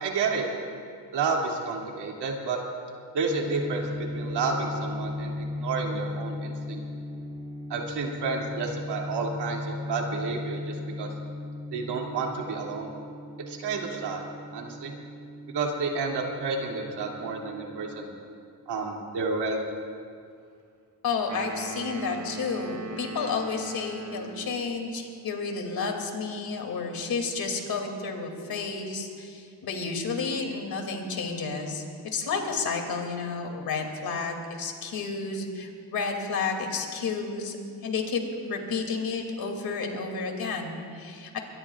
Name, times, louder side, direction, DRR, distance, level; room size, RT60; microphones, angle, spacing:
voice 1, 0.0-0.4 1.1-2.6 3.1-6.8 7.7-11.1 11.7-12.9 13.5-14.2 14.5-14.9 15.5-18.1 18.7-19.6, right 4 dB, 90° right, -1 dB, 2.6 m, -30 dB
sound 1, 3.3-18.1, left 2 dB, 15° right, 2.6 m, -37 dB
voice 2, 21.0-31.8 32.1-37.6 37.8-38.2 38.5-41.4, left 4 dB, 60° left, 2 dB, 2.7 m, -31 dB
sound 2, 21.3-24.6, right 1 dB, 50° right, 2.0 m, -39 dB
23.5 x 22.0 x 2.4 m, 2.3 s
cardioid pair, 105°, 40 cm